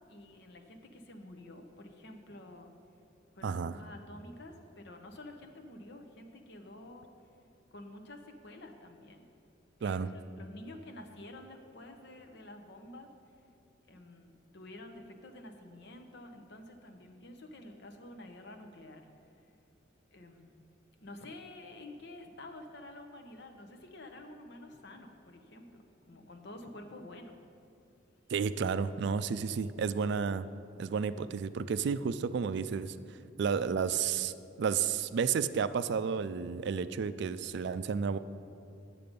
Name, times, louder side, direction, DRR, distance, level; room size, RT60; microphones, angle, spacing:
voice 1, 0.1-2.7 3.3-7.1 7.7-9.3 9.8-13.1 13.9-19.1 20.1-20.5 21.0-27.4, left 1 dB, 60° left, 5 dB, 0.9 m, -49 dB
voice 2, 3.4-3.7 9.8-10.1 28.3-30.5 30.8-32.9 33.4-34.3 34.6-38.2, right 6 dB, 60° right, 14 dB, 0.3 m, -31 dB
9.7 x 7.6 x 5.2 m, 2.7 s
head